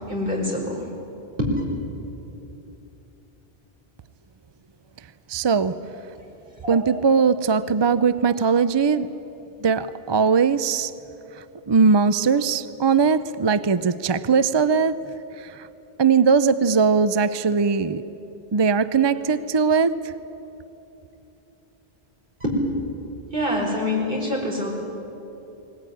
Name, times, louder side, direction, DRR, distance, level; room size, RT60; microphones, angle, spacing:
voice 1, 0.1-0.8 1.4-1.5 6.6-6.8 22.4-22.5 23.3-24.7, left 1 dB, 55° right, -2 dB, 5.0 m, -25 dB
voice 2, 5.3-5.7 6.7-9.1 9.6-10.9 11.7-15.0 15.4-15.7 16.0-18.0 18.5-20.1, right 5 dB, 35° right, 14 dB, 0.4 m, -20 dB
21.0 x 19.0 x 10.0 m, 3.0 s
omnidirectional pair, 1.1 m